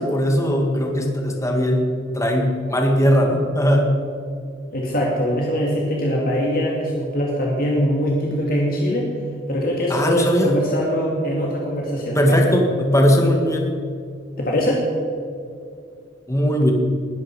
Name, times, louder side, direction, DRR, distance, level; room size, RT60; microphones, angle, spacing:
voice 1, 0.0-1.9 2.1-3.9 9.9-10.5 12.2-13.8 16.3-16.7, equal, 15° left, 2 dB, 1.9 m, -19 dB
voice 2, 4.7-9.1 9.5-12.5 14.4-14.9, equal, 50° left, -2 dB, 2.5 m, -22 dB
20.5 x 12.0 x 4.8 m, 2.4 s
head